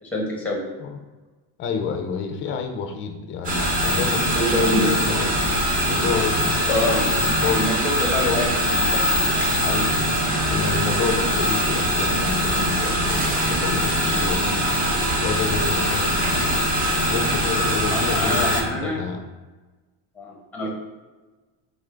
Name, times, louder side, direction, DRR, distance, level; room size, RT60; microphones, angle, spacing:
voice 1, 0.0-0.6 4.3-4.9 6.7-7.1 7.5-9.2 17.9-19.0 20.1-20.7, left 1 dB, 5° left, -2 dB, 0.9 m, -26 dB
voice 2, 1.6-5.3 5.9-6.6 7.1-7.6 8.2-8.4 9.6-10.1 10.5-14.6 14.8-16.5 17.1-19.2, left 5 dB, 30° left, 4 dB, 0.4 m, -29 dB
sound 1, 3.4-18.6, equal, 20° right, 0.6 m, -22 dB
3.7 x 3.7 x 3.3 m, 1.2 s
cardioid pair, 165°, 41 cm